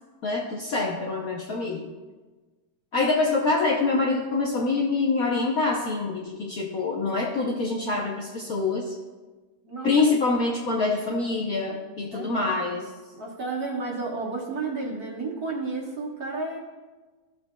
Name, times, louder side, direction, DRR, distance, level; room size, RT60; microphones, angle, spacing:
voice 1, 0.2-1.8 2.9-8.9 9.8-12.9, left 3 dB, 60° left, -1 dB, 1.0 m, -25 dB
voice 2, 9.6-10.1 12.1-12.5 13.1-16.6, right 3 dB, 50° right, -2 dB, 1.7 m, -32 dB
14.5 x 6.7 x 2.3 m, 1.3 s
omnidirectional pair, 2.3 m